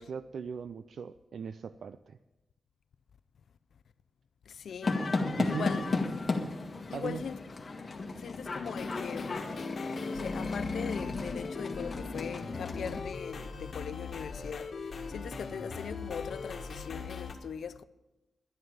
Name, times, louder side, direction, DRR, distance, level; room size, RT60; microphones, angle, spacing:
voice 1, 0.0-2.2 5.4-5.7 6.9-7.2, right 6 dB, 80° right, 0.4 m, -39 dB
voice 2, 4.5-5.0 5.4-5.9 6.9-7.4 8.1-9.4 10.0-17.8, left 7 dB, 90° left, 0.4 m, -40 dB
sound 1, 4.8-13.0, left 3 dB, 40° left, 1.6 m, -34 dB
sound 2, 8.7-17.3, left 4 dB, 60° left, 1.7 m, -41 dB
11.0 x 11.0 x 7.3 m
wide cardioid pair, 115°, 0 cm